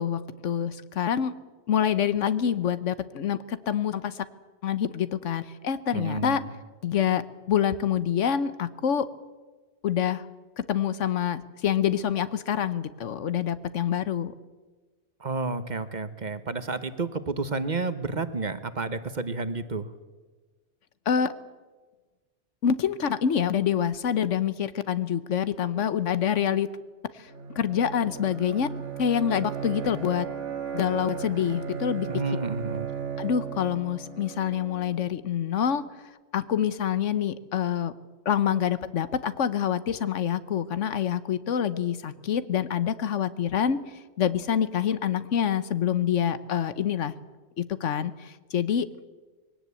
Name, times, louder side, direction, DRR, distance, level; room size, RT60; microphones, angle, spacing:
voice 1, 0.0-1.3 1.7-4.2 4.6-6.4 6.8-7.2 7.5-9.1 9.8-10.3 10.6-14.3 21.1-21.3 22.6-26.7 27.2-27.3 27.6-28.7 29.0-30.3 30.7-32.1 33.2-35.8 36.3-37.9 38.3-43.8 44.2-47.1 47.6-48.9, left 9 dB, 85° left, 14 dB, 1.3 m, -26 dB
voice 2, 5.9-6.5 15.2-19.9 32.1-32.9, right 3 dB, 40° right, 12 dB, 1.1 m, -31 dB
Bowed string instrument, 27.3-35.1, right 7 dB, 80° right, 2.0 m, -36 dB
21.0 x 17.5 x 8.4 m, 1.3 s
omnidirectional pair, 1.2 m